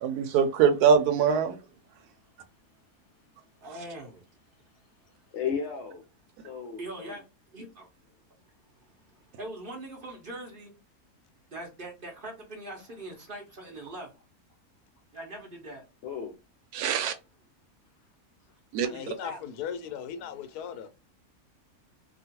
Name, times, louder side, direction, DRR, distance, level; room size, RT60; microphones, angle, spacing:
voice 1, 0.0-1.6 16.7-17.1 18.7-18.9, right 7 dB, 90° right, 1.1 m, -22 dB
voice 2, 3.6-4.2 6.8-7.2 7.5-7.9 9.4-10.7 11.5-14.1 15.1-15.8 18.8-19.4, right 1 dB, 45° right, 0.9 m, -41 dB
voice 3, 5.3-6.0 6.4-7.2 16.0-16.3, left 7 dB, 65° left, 0.7 m, -34 dB
voice 4, 18.9-20.9, left 8 dB, 90° left, 1.1 m, -37 dB
2.9 x 2.4 x 2.8 m
omnidirectional pair, 1.6 m